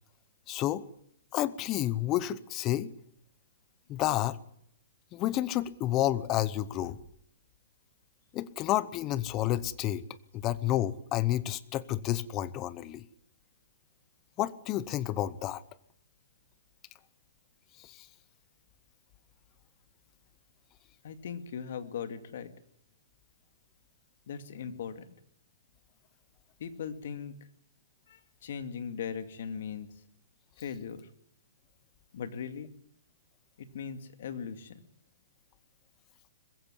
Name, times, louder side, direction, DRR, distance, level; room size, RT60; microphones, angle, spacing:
voice 1, 0.5-0.8 1.3-2.9 3.9-4.4 5.1-7.0 8.3-10.0 10.3-13.0 14.4-15.6 17.8-18.0, left 13 dB, 25° left, 18 dB, 0.9 m, -30 dB
voice 2, 21.0-22.5 24.3-25.0 26.6-27.3 28.1-29.9 30.6-31.1 32.1-32.7 33.6-34.8, left 7 dB, 60° left, 10 dB, 2.3 m, -39 dB
21.0 x 15.5 x 10.0 m, 0.71 s
hypercardioid pair, 160°, 0 cm